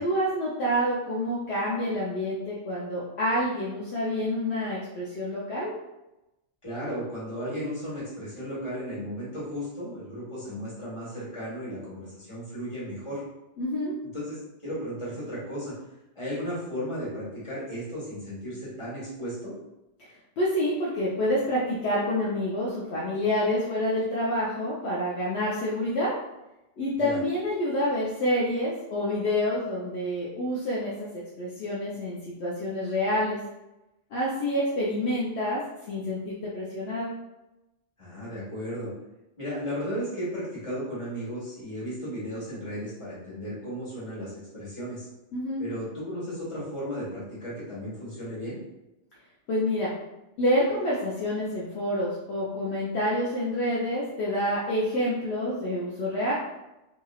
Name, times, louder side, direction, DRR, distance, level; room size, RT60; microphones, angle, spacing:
voice 1, 0.0-5.7 13.6-13.9 20.0-20.1 20.4-26.1 26.8-31.1 31.4-33.4 34.1-35.6 35.9-37.1 45.3-45.6 49.5-49.9 50.4-56.3, left 1 dB, 70° left, -6 dB, 0.8 m, -28 dB
voice 2, 6.6-13.2 14.0-15.7 16.1-19.5 27.0-27.2 38.0-38.9 39.4-45.1 45.6-48.6, equal, 25° left, -9 dB, 1.5 m, -35 dB
2.9 x 2.8 x 2.3 m, 0.95 s
omnidirectional pair, 1.2 m